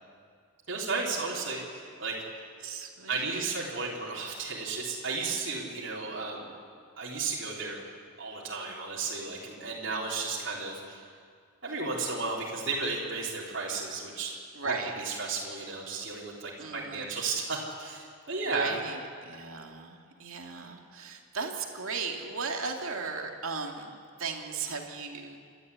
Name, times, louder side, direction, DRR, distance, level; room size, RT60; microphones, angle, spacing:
voice 1, 0.7-2.2 3.1-6.5 7.0-7.8 8.2-11.0 11.6-14.3 14.6-18.7, right 4 dB, 60° right, -5 dB, 3.6 m, -34 dB
voice 2, 2.6-3.4 14.5-14.9 16.6-17.1 18.5-19.0 19.3-23.9 24.2-25.4, right 4 dB, 80° right, 2 dB, 2.4 m, -36 dB
28.5 x 12.5 x 8.3 m, 2.2 s
head